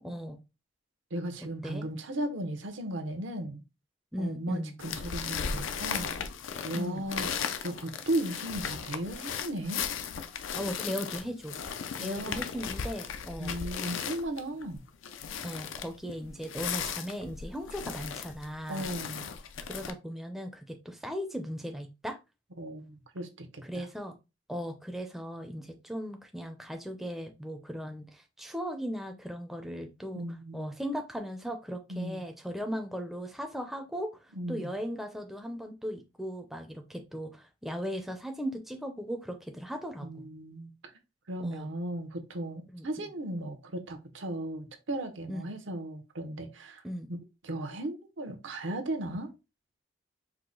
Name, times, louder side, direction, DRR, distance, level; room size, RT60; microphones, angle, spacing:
voice 1, 0.0-0.4 1.6-1.8 4.1-4.7 6.7-7.1 10.5-11.5 12.0-13.5 15.4-18.9 19.6-22.2 23.7-24.1 24.5-30.2 30.5-40.1 41.4-41.7 42.7-42.9 45.3-45.5 46.8-47.1, equal, ahead, 0.4 m, -37 dB
voice 2, 1.1-3.6 4.2-6.1 6.6-7.3 7.6-9.8 12.0-12.4 13.4-14.8 18.7-19.3 22.6-23.9 30.1-30.7 31.9-32.2 34.3-34.7 40.0-40.7 41.3-46.8 47.1-47.2 47.4-49.3, right 1 dB, 80° right, 0.8 m, -36 dB
sound 1, 4.8-19.9, left 7 dB, 90° left, 0.5 m, -36 dB
4.7 x 2.1 x 3.8 m
head